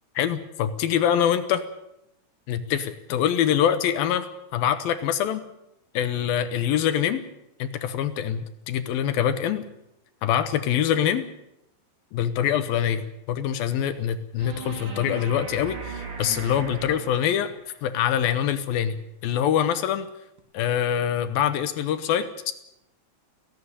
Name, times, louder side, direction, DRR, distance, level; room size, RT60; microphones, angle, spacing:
voice 1, 0.2-1.6 2.5-4.3 4.5-5.4 5.9-7.2 7.6-9.6 10.2-11.3 12.1-17.5 17.8-19.0 19.2-20.1 20.5-22.5, left 9 dB, 80° left, 11 dB, 2.9 m, -24 dB
sound 1, 14.4-17.7 20.4-20.5, right 4 dB, 40° right, 3.5 m, -38 dB
17.0 x 16.5 x 9.9 m, 0.82 s
omnidirectional pair, 4.2 m